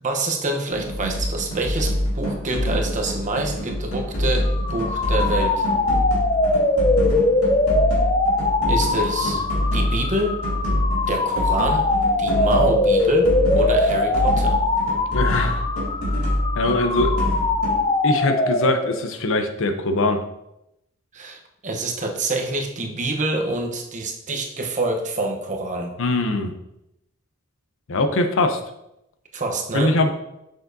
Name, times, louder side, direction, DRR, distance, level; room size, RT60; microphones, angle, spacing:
voice 1, 0.0-5.7 8.7-9.4 9.7-10.4 11.1-11.9 12.2-14.6 21.1-26.0 29.3-30.1, right 2 dB, 35° right, 2 dB, 0.9 m, -26 dB
sound 1, 0.7-17.8, equal, 90° left, 2.2 m, -25 dB
sound 2, 4.4-19.1, left 2 dB, 25° left, 0.5 m, -22 dB
voice 2, 15.1-15.6 16.6-17.2 18.0-20.2 26.0-26.5 27.9-28.6 29.7-30.1, left 2 dB, 65° left, 7 dB, 0.7 m, -22 dB
7.0 x 6.4 x 2.7 m, 0.84 s
head